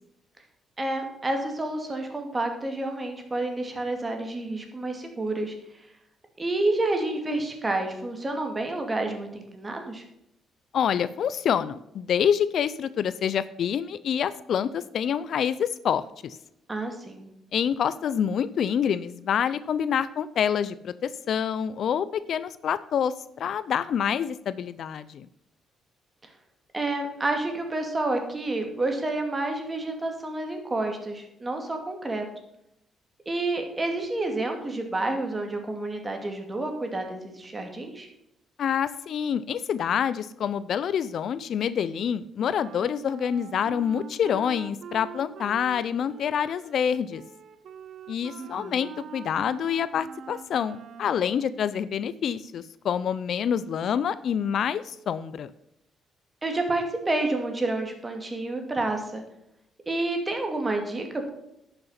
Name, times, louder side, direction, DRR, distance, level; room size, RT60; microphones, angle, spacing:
voice 1, 0.8-5.5 6.4-10.0 16.7-17.3 26.7-32.2 33.3-38.1 48.4-48.8 56.4-59.2 59.9-61.3, right 2 dB, 25° right, 4 dB, 2.4 m, -29 dB
voice 2, 10.7-16.4 17.5-25.3 38.6-47.2 48.1-55.5, left 8 dB, 65° left, 16 dB, 0.5 m, -27 dB
Wind instrument woodwind instrument, 42.4-51.4, right 7 dB, 65° right, 0.9 m, -44 dB
11.5 x 6.7 x 5.7 m, 0.80 s
cardioid pair, 90°, 0 cm